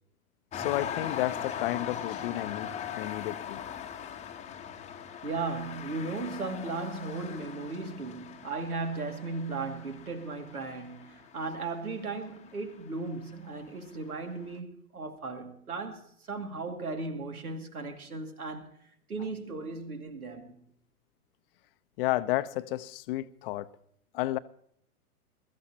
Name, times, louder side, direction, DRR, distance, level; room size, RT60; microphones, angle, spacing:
voice 1, 0.5-3.6 22.0-23.7 24.1-24.4, left 16 dB, 40° left, 0.8 m, -32 dB
sound 1, 0.5-13.3 14.0-14.1, left 8 dB, 15° left, 1.0 m, -40 dB
voice 2, 5.2-18.7 19.1-20.6, right 3 dB, 80° right, 2.4 m, -36 dB
22.0 x 13.5 x 2.8 m
figure-of-eight pair, 105°, 44 cm